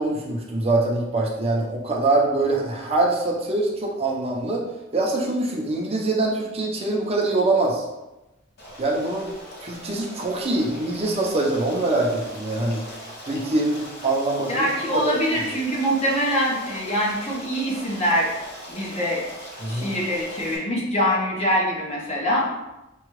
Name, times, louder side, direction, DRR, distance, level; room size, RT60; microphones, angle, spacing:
voice 1, 0.0-4.6 4.9-7.8 8.8-9.3 9.6-12.8 13.3-14.7 15.0-15.1 19.6-19.9, right 2 dB, 30° right, -2 dB, 0.6 m, -24 dB
Stream, 8.6-20.6, equal, 55° left, 0.8 m, -40 dB
voice 2, 14.5-18.3 18.7-19.2 19.7-22.5, equal, 35° left, -4 dB, 0.9 m, -24 dB
4.8 x 2.3 x 3.1 m, 0.99 s
head